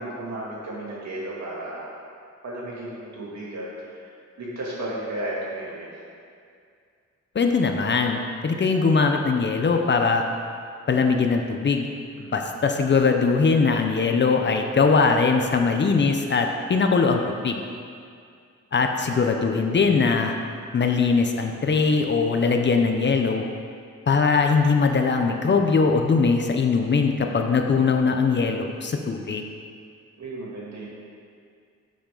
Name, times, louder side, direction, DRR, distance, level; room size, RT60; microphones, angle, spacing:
voice 1, 0.0-1.9 2.4-4.1 4.4-5.9 12.2-12.3 30.2-30.9, right 1 dB, 70° right, -6 dB, 2.6 m, -34 dB
voice 2, 7.3-10.2 10.9-11.9 12.2-17.6 18.7-20.3 20.7-23.4 24.1-29.5, left 4 dB, 40° left, 4 dB, 0.6 m, -21 dB
11.5 x 7.3 x 3.9 m, 2.3 s
wide cardioid pair, 175°, 29 cm